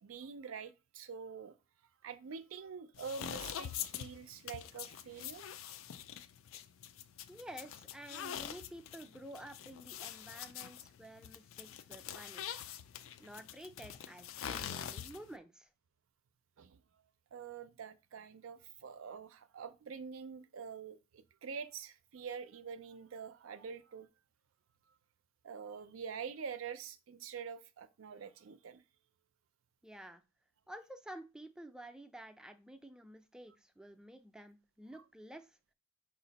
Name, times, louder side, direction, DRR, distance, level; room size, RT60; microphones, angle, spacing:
voice 1, 0.0-1.5 2.0-5.5 16.6-16.8 17.3-24.1 25.4-28.8, right 6 dB, 85° right, 0.4 m, -46 dB
sound 1, 2.9-15.4, left 9 dB, 80° left, 0.4 m, -45 dB
voice 2, 7.3-12.6 13.2-15.7 29.8-30.2 30.7-35.6, right 1 dB, 5° right, 0.4 m, -51 dB
4.8 x 2.5 x 4.0 m
head